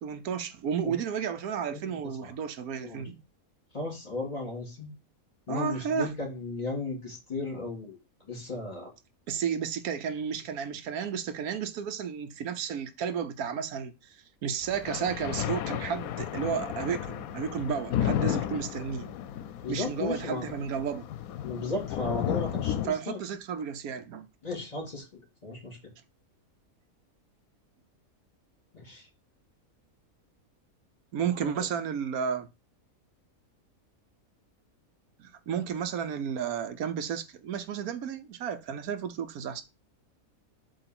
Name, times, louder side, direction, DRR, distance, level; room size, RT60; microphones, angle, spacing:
voice 1, 0.0-3.2 5.5-6.1 9.3-14.2 14.4-19.1 19.7-21.1 22.9-24.3 31.1-32.5 35.2-39.6, right 7 dB, 85° right, 1.2 m, -32 dB
voice 2, 3.7-4.9 5.5-8.0 8.3-8.9 19.6-20.4 21.4-23.2 24.4-25.8 28.7-29.1 31.4-31.6, left 3 dB, 30° left, 2.8 m, -35 dB
sound 1, 14.6-22.9, left 10 dB, 80° left, 1.0 m, -33 dB
7.8 x 3.0 x 5.9 m
omnidirectional pair, 1.5 m